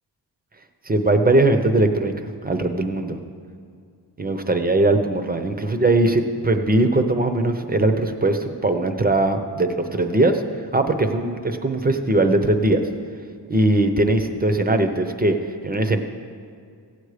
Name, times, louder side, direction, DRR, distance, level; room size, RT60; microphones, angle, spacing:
voice 1, 0.9-2.1 2.4-3.2 4.2-10.4 10.7-12.8 13.5-15.4 15.6-16.0, right 2 dB, 20° right, 7 dB, 0.6 m, -20 dB
16.0 x 8.1 x 4.9 m, 2.3 s
wide cardioid pair, 175°, 42 cm